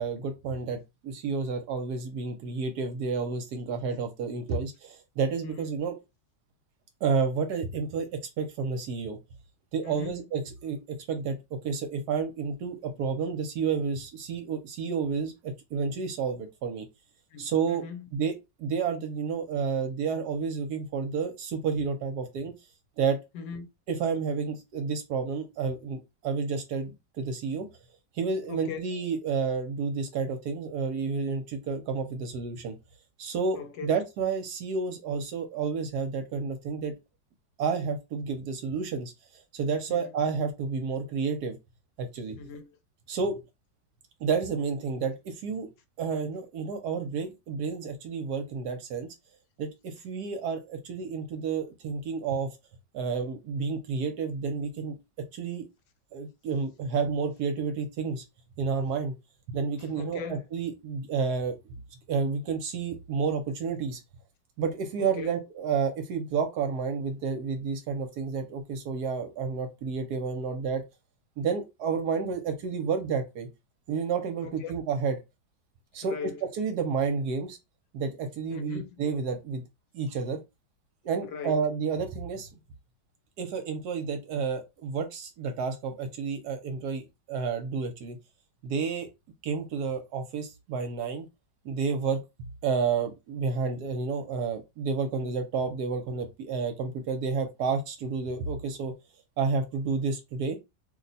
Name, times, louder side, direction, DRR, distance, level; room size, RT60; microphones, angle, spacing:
voice 1, 0.0-6.0 7.0-8.1 8.4-9.2 9.7-10.8 11.1-11.4 11.6-16.9 17.4-17.8 18.1-18.3 18.6-22.5 23.0-23.2 23.9-27.7 28.1-32.8 33.2-36.9 37.6-39.1 39.5-41.6 42.0-42.4 43.1-43.4 44.2-45.7 46.0-49.1 49.6-52.5 52.9-55.0 55.3-55.6 56.1-58.2 58.6-59.1 59.5-61.6 62.1-64.0 64.6-70.8 71.4-73.5 73.9-75.1 75.9-76.2 76.6-77.6 77.9-79.6 79.9-80.4 81.0-82.5 83.4-88.2 88.6-89.1 89.4-91.3 91.6-92.2 92.6-98.9 99.4-100.6, right 5 dB, 70° right, 1.1 m, -30 dB
voice 2, 9.8-10.3 17.3-18.1 23.3-23.7 28.5-28.8 33.5-33.9 39.9-40.1 42.4-42.8 59.8-60.4 65.0-65.3 74.4-74.7 76.0-76.5 78.5-79.0 81.2-81.6, left 6 dB, 80° left, 1.2 m, -40 dB
2.9 x 2.1 x 3.9 m
omnidirectional pair, 1.9 m